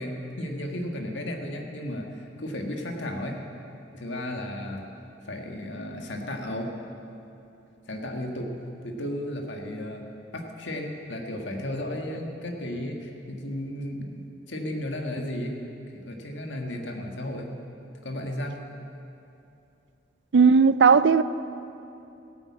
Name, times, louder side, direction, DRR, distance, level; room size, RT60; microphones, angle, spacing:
voice 1, 0.0-3.4 3.9-4.8 5.3-6.7 7.9-8.5 8.8-10.0 10.3-15.6 15.9-17.5 18.0-18.5, left 1 dB, 80° left, 1.7 m, -34 dB
voice 2, 20.3-21.2, right 5 dB, 70° right, 0.4 m, -16 dB
15.5 x 9.0 x 8.5 m
head